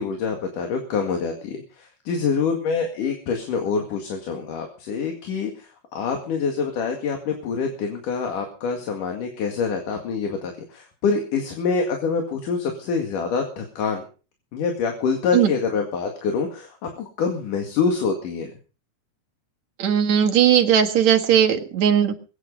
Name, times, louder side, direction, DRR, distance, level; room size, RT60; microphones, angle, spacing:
voice 1, 0.0-14.0 14.5-18.5, left 5 dB, 80° left, 3 dB, 3.6 m, -26 dB
voice 2, 19.8-22.1, right 9 dB, 60° right, 2 dB, 2.9 m, -18 dB
22.5 x 9.4 x 5.2 m, 0.37 s
omnidirectional pair, 3.6 m